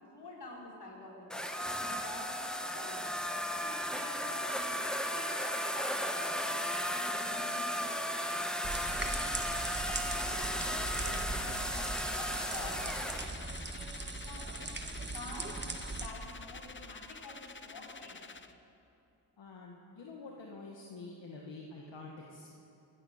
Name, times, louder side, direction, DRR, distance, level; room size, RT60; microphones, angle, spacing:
voice 1, 0.0-3.0 3.6-4.8 5.1-6.5 6.8-8.1 8.7-9.5 9.8-14.5 15.1-18.2, left 2 dB, 60° left, -3 dB, 4.3 m, -49 dB
sound 1, 1.3-13.3, equal, ahead, 1.1 m, -35 dB
sound 2, 8.6-16.1, right 2 dB, 25° right, 1.3 m, -40 dB
sound 3, 8.8-18.5, left 4 dB, 25° left, 0.7 m, -49 dB
voice 2, 19.4-22.5, left 3 dB, 80° left, -1 dB, 1.6 m, -47 dB
16.5 x 12.5 x 6.6 m, 2.7 s
cardioid pair, 70°, 43 cm